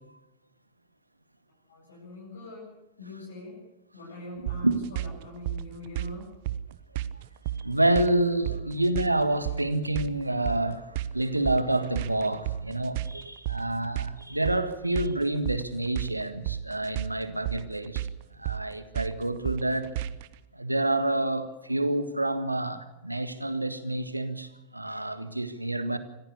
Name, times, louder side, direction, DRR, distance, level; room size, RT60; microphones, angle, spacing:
voice 1, 1.7-2.7 3.0-3.6 3.9-6.3, left 1 dB, 70° left, 7.9 m, -42 dB
sound 1, 4.5-20.3, right 12 dB, 50° right, 0.9 m, -34 dB
voice 2, 7.6-18.0 18.4-19.9 20.5-26.0, right 1 dB, 85° right, 1.6 m, -28 dB
26.0 x 15.0 x 8.4 m
figure-of-eight pair, 90°, 0 cm